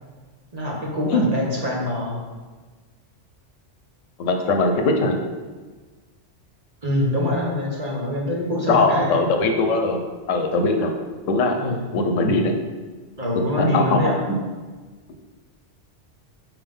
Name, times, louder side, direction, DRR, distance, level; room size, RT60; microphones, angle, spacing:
voice 1, 0.5-2.2 6.8-9.2 9.5-9.6 11.6-11.8 13.2-14.2, left 1 dB, 35° right, -4 dB, 1.3 m, -24 dB
voice 2, 4.2-5.2 8.7-10.0 10.3-10.9 11.3-12.5 13.6-14.0, left 3 dB, 90° left, 4 dB, 1.1 m, -20 dB
4.8 x 3.7 x 5.4 m, 1.3 s
omnidirectional pair, 1.3 m